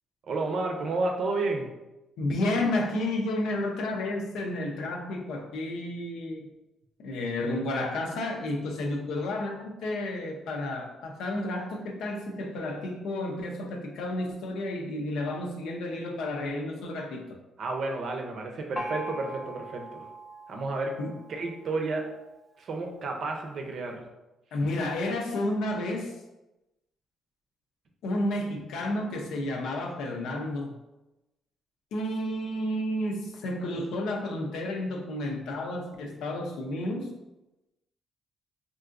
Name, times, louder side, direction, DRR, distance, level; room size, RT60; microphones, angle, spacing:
voice 1, 0.2-1.7 17.6-20.1 20.5-21.0 21.3-22.1 22.6-24.0, right 3 dB, 60° right, 2 dB, 0.6 m, -31 dB
voice 2, 2.2-6.5 7.0-17.4 21.0-21.2 24.5-26.2 28.0-30.8 31.9-37.1, left 1 dB, 85° left, 2 dB, 0.5 m, -31 dB
Gong, 18.8-22.3, right 1 dB, 25° left, 0.5 m, -40 dB
3.5 x 2.5 x 2.5 m, 0.98 s
cardioid pair, 90°, 0 cm